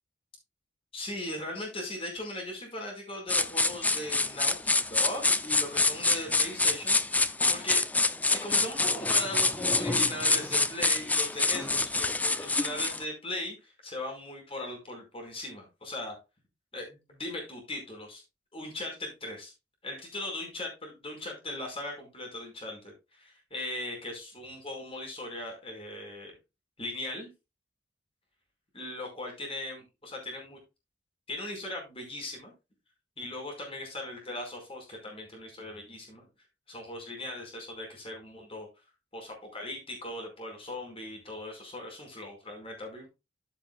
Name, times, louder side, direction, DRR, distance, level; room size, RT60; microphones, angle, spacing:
voice 1, 0.9-7.8 8.2-16.2 16.7-18.2 18.5-19.5 19.8-26.3 26.8-27.3 28.7-30.6 31.3-32.5 33.2-36.2 36.7-38.7 39.1-43.1, left 1 dB, 30° left, 1 dB, 5.0 m, -39 dB
sound 1, 3.3-13.0, left 3 dB, 10° left, 0.5 m, -26 dB
14.5 x 7.2 x 2.3 m, 0.25 s
head